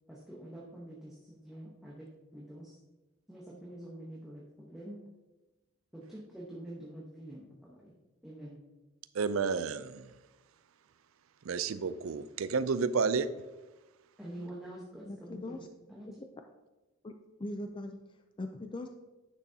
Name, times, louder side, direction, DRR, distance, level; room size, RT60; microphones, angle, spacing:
voice 1, 0.1-2.8 3.3-5.0 5.9-7.9 8.2-8.6 14.2-15.6 15.9-16.1, right 1 dB, ahead, -5 dB, 1.0 m, -46 dB
voice 2, 9.1-10.1 11.4-13.3, right 5 dB, 80° right, 14 dB, 0.4 m, -31 dB
voice 3, 15.1-15.6 16.1-16.3 17.0-17.1 17.4-18.0 18.4-18.9, left 1 dB, 25° left, 6 dB, 0.4 m, -40 dB
10.0 x 6.2 x 2.8 m, 1.1 s
head